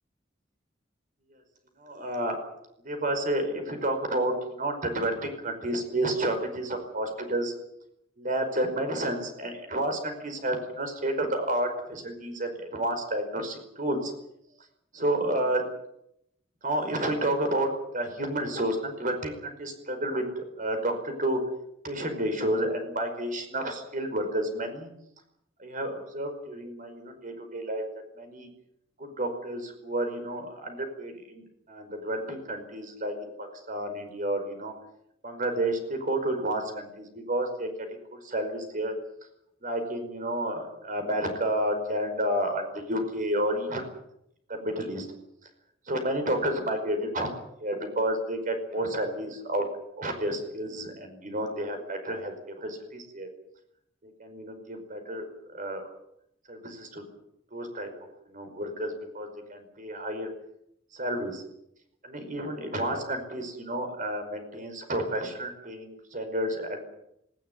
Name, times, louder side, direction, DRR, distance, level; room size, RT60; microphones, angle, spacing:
voice 1, 1.8-2.4 2.8-7.5 8.2-14.1 14.9-15.6 16.6-21.4 21.8-24.9 25.6-27.8 28.2-28.5 29.0-34.7 35.2-38.9 39.6-43.9 44.5-45.1 45.8-47.3 47.6-49.7 50.0-53.3 54.0-55.8 56.5-57.1 57.5-57.9 58.3-60.3 60.9-61.4 62.0-67.0, right 1 dB, 45° right, 6 dB, 5.1 m, -30 dB
19.5 x 18.5 x 9.9 m, 0.78 s
head